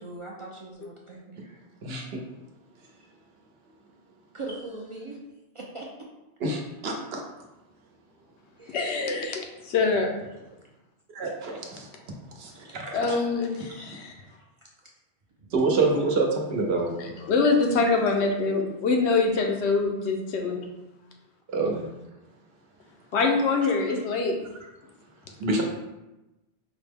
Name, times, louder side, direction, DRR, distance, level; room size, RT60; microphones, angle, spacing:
voice 1, 0.0-1.6 4.3-5.2 5.5-5.9 8.6-8.8 12.7-12.8 13.5-13.7 14.3-14.7 17.6-18.1 18.5-18.7, right 2 dB, 45° right, -3 dB, 0.4 m, -41 dB
voice 2, 1.8-2.2 6.4-7.2 11.1-11.9 12.4-13.2 15.5-17.1 21.5-21.9 25.4-25.6, right 3 dB, 70° right, 1 dB, 0.9 m, -27 dB
voice 3, 8.7-10.1 12.9-14.1 17.2-20.6 23.1-24.3, left 4 dB, 90° left, 2 dB, 0.9 m, -24 dB
4.9 x 2.1 x 3.4 m, 0.99 s
omnidirectional pair, 1.1 m